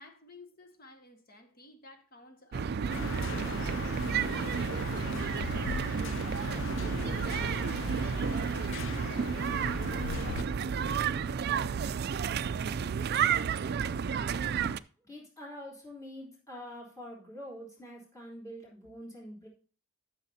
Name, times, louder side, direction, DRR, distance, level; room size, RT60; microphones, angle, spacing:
voice 1, 0.0-4.7, left 2 dB, 45° left, 1.6 m, -55 dB
sound 1, 2.5-14.8, right 6 dB, 50° right, 0.3 m, -31 dB
sound 2, 2.9-10.4, left 6 dB, 60° left, 0.4 m, -40 dB
voice 2, 15.0-19.5, equal, 15° left, 3.5 m, -45 dB
12.0 x 7.0 x 2.8 m
head